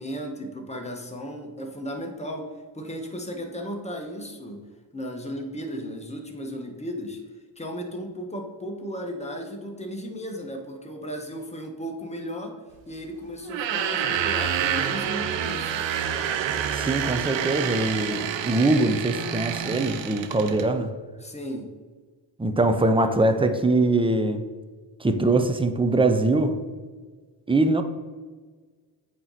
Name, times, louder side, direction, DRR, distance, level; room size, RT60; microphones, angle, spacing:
voice 1, 0.0-4.6 4.9-7.2 7.6-12.6 12.9-15.8 21.2-21.7, equal, 15° left, 1.2 m, -35 dB
sound 1, 13.4-20.7, right 8 dB, 85° right, 0.6 m, -28 dB
voice 2, 16.7-20.9 22.4-24.5 25.0-26.6 27.5-27.8, right 2 dB, 10° right, 0.6 m, -22 dB
8.6 x 3.1 x 4.1 m
cardioid pair, 60°, 44 cm